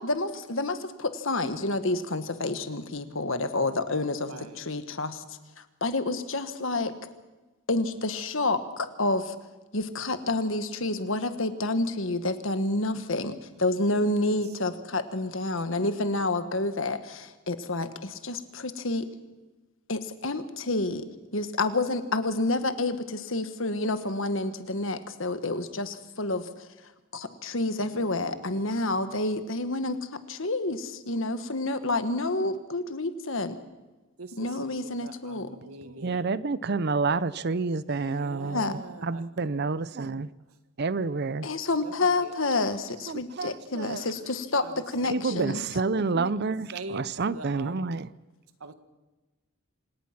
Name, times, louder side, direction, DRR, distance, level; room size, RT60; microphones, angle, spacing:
voice 1, 0.0-5.2 5.6-6.9 7.7-9.4 9.7-19.1 19.9-21.1 21.3-26.7 27.1-30.0 30.3-33.6 34.3-35.5 38.0-38.1 38.4-38.8 41.4-45.6, left 2 dB, 65° left, 1.5 m, -29 dB
voice 2, 4.2-4.6 14.3-14.7 27.8-29.1 34.2-36.2 38.0-39.2 41.8-42.3 44.6-45.4 46.7-47.9 48.6-48.7, right 2 dB, 85° right, 1.8 m, -44 dB
voice 3, 35.8-38.6 39.0-40.3 40.8-41.5 43.1-44.1 45.1-48.1, right 4 dB, 50° right, 0.6 m, -29 dB
26.5 x 18.0 x 6.0 m
head